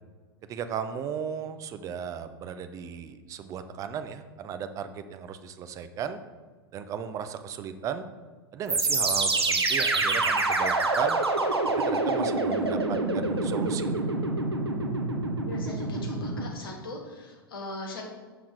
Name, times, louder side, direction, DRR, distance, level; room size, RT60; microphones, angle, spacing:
voice 1, 0.5-6.2 6.7-8.0 8.5-11.2 11.8-14.0, right 7 dB, 25° right, 10 dB, 0.6 m, -35 dB
sound 1, 8.7-16.5, right 2 dB, 80° right, 0.8 m, -26 dB
voice 2, 15.5-18.0, left 2 dB, 60° left, 1 dB, 1.8 m, -40 dB
6.5 x 5.8 x 4.8 m, 1.4 s
figure-of-eight pair, 95°, 13 cm